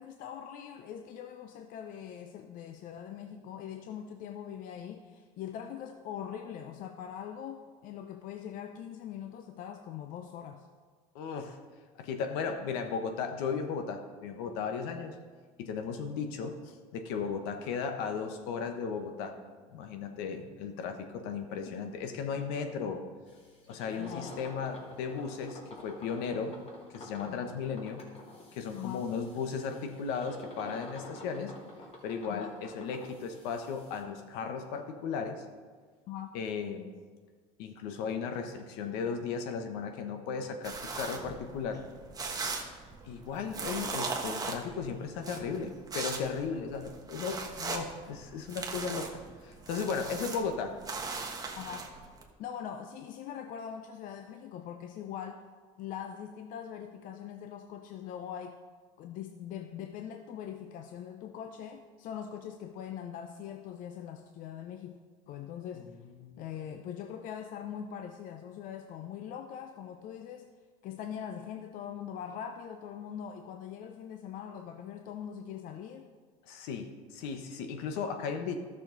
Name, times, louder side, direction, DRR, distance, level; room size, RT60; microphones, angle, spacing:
voice 1, 0.0-10.7 24.0-24.3 27.3-27.6 28.7-29.1 32.3-32.5 36.1-36.3 51.6-52.0 52.4-55.5 55.8-58.6 59.0-65.0 65.3-65.9 66.4-70.5 70.8-76.1, left 9 dB, 55° left, 6 dB, 0.6 m, -42 dB
voice 2, 11.1-11.6 12.0-15.2 15.6-16.6 16.9-19.4 19.7-23.0 23.7-26.6 26.9-28.0 28.5-31.5 32.0-35.4 36.3-36.9 37.6-41.9 43.1-50.8 65.7-66.4 76.5-78.6, left 5 dB, 70° left, 6 dB, 1.1 m, -36 dB
sound 1, 23.3-34.0, left 1 dB, 35° left, 2.4 m, -49 dB
sound 2, 40.6-52.2, right 4 dB, 20° right, 1.2 m, -39 dB
12.5 x 6.5 x 3.9 m, 1.5 s
supercardioid pair, 105°, 17 cm